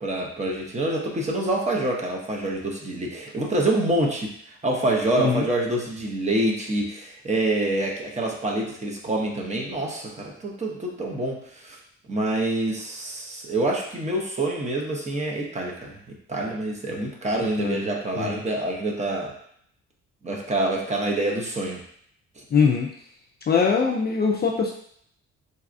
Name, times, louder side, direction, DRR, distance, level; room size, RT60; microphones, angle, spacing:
voice 1, 0.0-4.3 4.6-11.8 12.1-16.0 16.3-19.3 20.2-21.8, right 1 dB, 20° right, -1 dB, 0.7 m, -26 dB
voice 2, 22.5-22.9 23.5-24.7, left 5 dB, 35° left, -1 dB, 0.4 m, -22 dB
4.0 x 2.3 x 2.5 m, 0.67 s
cardioid pair, 100°, 31 cm